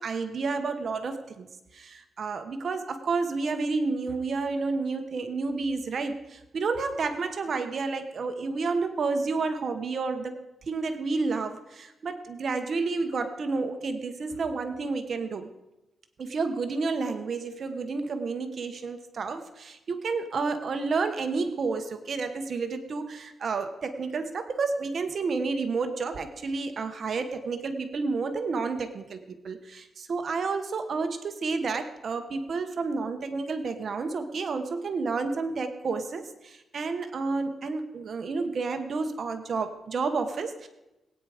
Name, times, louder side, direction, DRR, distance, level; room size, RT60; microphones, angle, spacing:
voice 1, 0.0-1.5 1.7-10.4 10.6-15.5 16.2-40.7, right 4 dB, 50° right, 8 dB, 1.0 m, -30 dB
20.0 x 9.2 x 4.9 m, 0.98 s
wide cardioid pair, 140°, 0 cm